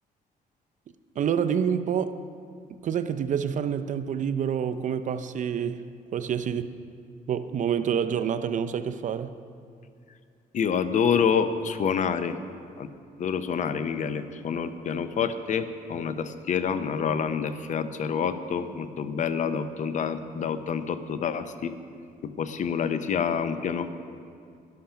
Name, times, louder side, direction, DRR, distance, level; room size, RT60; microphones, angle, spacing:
voice 1, 1.2-2.2 2.7-5.8 6.1-6.7 7.3-9.3, right 8 dB, 50° right, 0.5 m, -27 dB
voice 2, 10.5-12.4 12.8-12.9 13.2-21.7 22.2-23.9, left 7 dB, 50° left, 0.7 m, -27 dB
11.5 x 11.5 x 5.7 m
cardioid pair, 125°, 16 cm